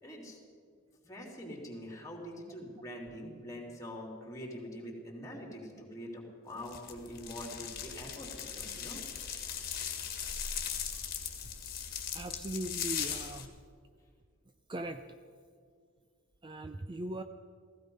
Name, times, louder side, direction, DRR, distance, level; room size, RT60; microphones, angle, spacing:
voice 1, 0.0-0.4 1.0-9.0, equal, 15° left, 0 dB, 3.0 m, -44 dB
sound 1, 6.6-13.5, left 8 dB, 50° left, 1.7 m, -39 dB
voice 2, 12.1-13.5 14.7-15.0 16.4-17.2, right 1 dB, 25° right, 8 dB, 0.5 m, -39 dB
16.0 x 16.0 x 5.4 m, 2.1 s
head